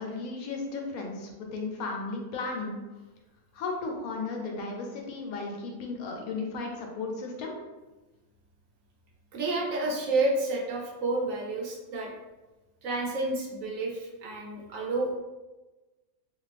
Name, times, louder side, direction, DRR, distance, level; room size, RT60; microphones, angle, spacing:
voice 1, 0.0-2.8 3.5-7.5, left 3 dB, 80° left, 1 dB, 1.1 m, -35 dB
voice 2, 9.3-12.1 12.8-15.1, right 2 dB, 70° right, -2 dB, 1.0 m, -30 dB
2.5 x 2.4 x 3.2 m, 1.1 s
omnidirectional pair, 1.5 m